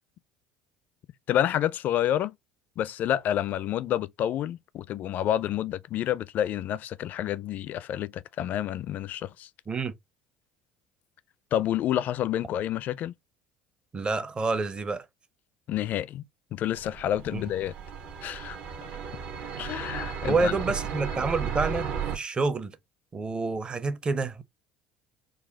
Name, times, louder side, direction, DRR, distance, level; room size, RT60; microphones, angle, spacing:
voice 1, 1.3-2.3 2.8-9.5 11.5-13.1 15.7-16.2 16.5-17.7 18.2-18.6 19.6-20.6, left 11 dB, 55° left, 0.4 m, -29 dB
voice 2, 13.9-15.0 17.3-17.4 20.3-22.7 23.1-24.4, right 3 dB, 25° right, 0.7 m, -28 dB
sound 1, 16.7-22.2, right 6 dB, 55° right, 1.0 m, -35 dB
4.1 x 2.3 x 3.8 m
hypercardioid pair, 70°, 4 cm